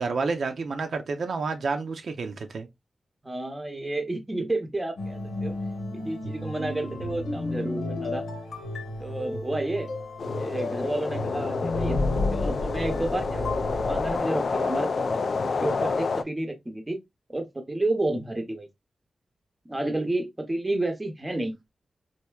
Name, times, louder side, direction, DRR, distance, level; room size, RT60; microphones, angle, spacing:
voice 1, 0.0-2.7, right 4 dB, 65° right, 0.6 m, -29 dB
voice 2, 3.2-5.5 5.9-8.2 9.0-9.9 10.4-12.1 12.3-17.0 17.3-18.7 19.6-21.5, right 2 dB, 15° right, 0.7 m, -31 dB
sound 1, 5.0-14.2, left 2 dB, 75° left, 1.0 m, -32 dB
sound 2, 10.2-16.2, left 4 dB, 55° left, 0.4 m, -29 dB
4.3 x 2.6 x 2.3 m
wide cardioid pair, 145°, 0 cm